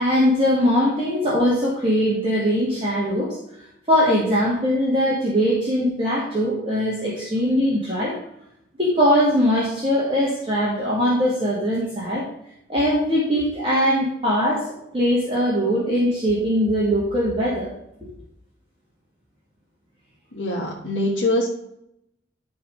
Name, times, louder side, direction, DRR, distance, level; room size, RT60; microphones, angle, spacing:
voice 1, 0.0-3.4 3.9-8.2 8.8-12.3 12.7-14.6 14.9-17.7, equal, 25° right, -7 dB, 2.1 m, -21 dB
voice 2, 20.3-21.5, left 1 dB, 75° left, -5 dB, 1.7 m, -23 dB
12.0 x 4.1 x 5.3 m, 0.78 s
head